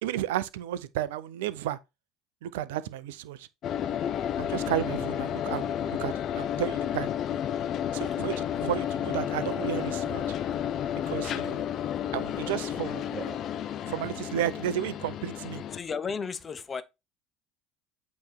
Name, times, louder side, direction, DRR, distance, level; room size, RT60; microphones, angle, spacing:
voice 1, 0.0-1.8 2.4-3.5 4.4-7.1 7.9-10.2 11.1-11.6 12.1-13.0 13.9-15.6, right 12 dB, 70° right, 0.5 m, -32 dB
sound 1, 3.6-15.8, left 10 dB, 50° left, 0.5 m, -31 dB
sound 2, 7.8-13.4, right 6 dB, 35° right, 0.8 m, -50 dB
voice 2, 13.1-13.5 14.0-14.1 15.7-16.8, left 5 dB, 30° left, 0.9 m, -35 dB
8.4 x 3.2 x 4.4 m
hypercardioid pair, 65°, 0 cm